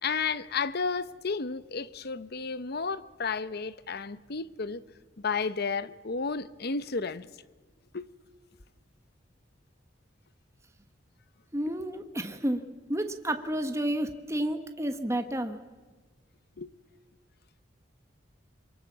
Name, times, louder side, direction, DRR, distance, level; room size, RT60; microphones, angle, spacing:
voice 1, 0.0-4.8 5.2-7.3 7.9-8.1 16.6-16.7, left 5 dB, 55° left, 0.8 m, -32 dB
voice 2, 11.5-12.6 12.9-15.6, right 1 dB, 15° right, 1.2 m, -30 dB
25.5 x 23.0 x 7.4 m
head